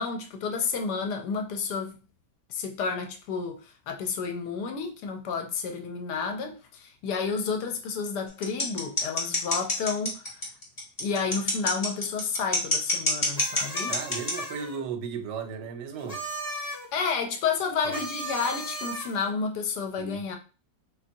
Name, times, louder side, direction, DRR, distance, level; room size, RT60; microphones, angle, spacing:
voice 1, 0.0-2.0 2.5-10.2 11.0-14.0 16.9-20.4, left 5 dB, 75° left, 1.1 m, -31 dB
sound 1, 8.4-14.3, left 2 dB, 30° left, 0.8 m, -25 dB
sound 2, 13.3-14.8 16.0-16.9 17.9-19.3, right 1 dB, 5° right, 0.5 m, -36 dB
voice 2, 13.9-16.2 17.8-17.9 20.0-20.2, right 6 dB, 80° right, 1.2 m, -35 dB
3.4 x 2.8 x 2.6 m
omnidirectional pair, 1.9 m